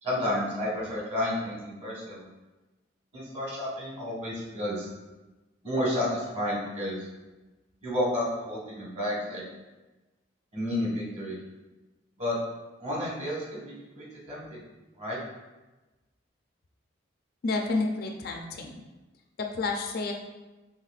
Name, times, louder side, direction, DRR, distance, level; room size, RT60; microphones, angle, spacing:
voice 1, 0.0-2.2 3.1-4.9 5.6-7.1 7.8-9.4 10.5-11.4 12.2-12.4 12.8-14.6 15.0-15.2, left 1 dB, 35° right, -5 dB, 1.3 m, -31 dB
voice 2, 17.4-18.8 19.4-20.1, left 3 dB, 50° left, 2 dB, 0.4 m, -30 dB
5.7 x 3.3 x 2.4 m, 1.1 s
head